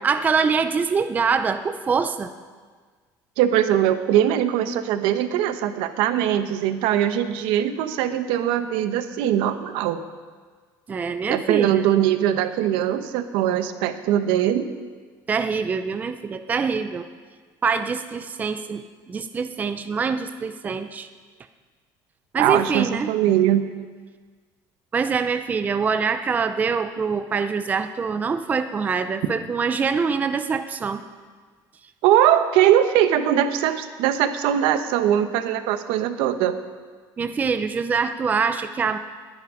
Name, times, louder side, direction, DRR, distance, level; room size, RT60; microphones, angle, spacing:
voice 1, 0.0-2.3 10.9-11.9 15.3-17.1 17.6-18.8 19.1-21.1 22.3-23.1 24.9-31.0 37.2-39.0, right 5 dB, 20° right, 9 dB, 0.5 m, -24 dB
voice 2, 3.4-10.0 11.3-14.7 22.4-23.6 32.0-36.6, right 11 dB, 80° right, 9 dB, 1.1 m, -21 dB
21.0 x 10.0 x 5.0 m, 1.5 s
cardioid pair, 160°, 9 cm